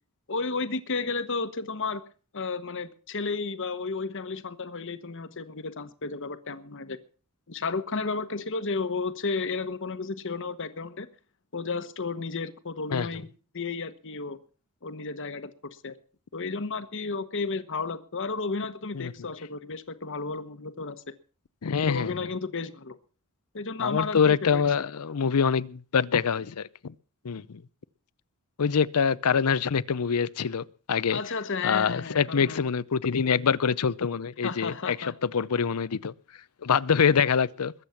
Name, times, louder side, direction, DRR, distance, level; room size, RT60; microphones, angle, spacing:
voice 1, 0.3-2.0 2.3-7.0 7.5-11.1 11.5-13.3 13.5-14.4 14.8-15.5 15.8-15.9 16.3-21.0 21.9-23.0 23.5-24.6 31.1-32.6 34.4-35.1, left 4 dB, 60° left, 1.1 m, -32 dB
voice 2, 21.6-22.1 23.8-26.9 27.2-27.6 28.6-31.2 31.6-36.1 36.6-37.7, left 6 dB, 85° left, 0.6 m, -25 dB
21.5 x 8.0 x 5.8 m
head